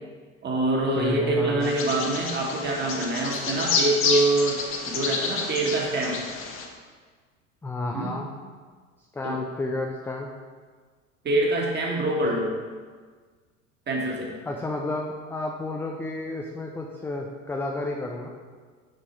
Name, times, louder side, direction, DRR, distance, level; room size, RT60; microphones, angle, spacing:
voice 1, 0.4-4.6 4.9-6.2 7.9-8.2 9.2-9.4 11.2-12.5 13.9-14.3, right 2 dB, 25° right, -1 dB, 1.9 m, -25 dB
voice 2, 1.0-1.7 7.6-8.3 9.1-10.3 14.5-18.3, left 2 dB, 5° left, 0 dB, 0.4 m, -31 dB
Bird vocalization bird call bird song, 1.6-6.7, left 4 dB, 30° left, 1.2 m, -29 dB
6.7 x 6.1 x 4.6 m, 1.5 s
figure-of-eight pair, 75°, 40 cm